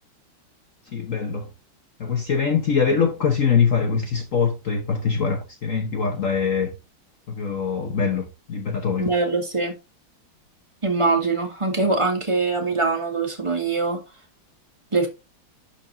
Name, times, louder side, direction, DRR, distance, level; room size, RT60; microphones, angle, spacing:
voice 1, 0.9-1.5 2.0-6.7 7.3-9.1, left 6 dB, 50° left, 1.2 m, -23 dB
voice 2, 9.0-9.7 10.8-14.0 14.9-15.1, right 3 dB, 15° right, 1.8 m, -23 dB
11.5 x 4.4 x 2.7 m
omnidirectional pair, 2.1 m